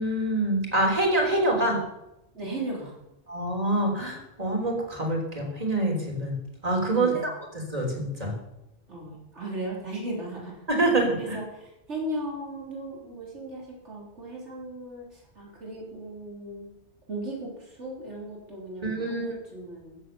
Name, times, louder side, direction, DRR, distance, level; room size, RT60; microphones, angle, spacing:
voice 1, 0.0-1.8 3.3-6.3 6.6-7.3 7.7-8.3 10.7-11.4 18.8-19.3, right 1 dB, 35° right, 0 dB, 3.4 m, -25 dB
voice 2, 2.3-3.0 6.9-7.3 8.9-10.6 11.2-16.7 17.1-20.0, right 1 dB, 80° right, -3 dB, 4.0 m, -36 dB
14.5 x 7.5 x 6.9 m, 0.90 s
omnidirectional pair, 1.2 m